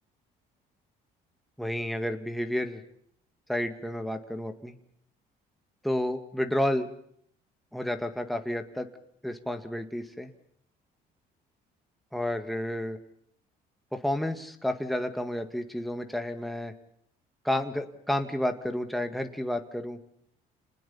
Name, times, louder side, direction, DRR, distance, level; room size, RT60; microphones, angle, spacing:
voice 1, 1.6-2.8 3.5-4.7 5.8-6.9 7.7-8.9 9.2-10.3 12.1-13.0 13.9-16.7 17.4-20.0, left 1 dB, ahead, 6 dB, 1.9 m, -31 dB
28.0 x 19.5 x 7.1 m, 0.67 s
cardioid pair, 110°, 17 cm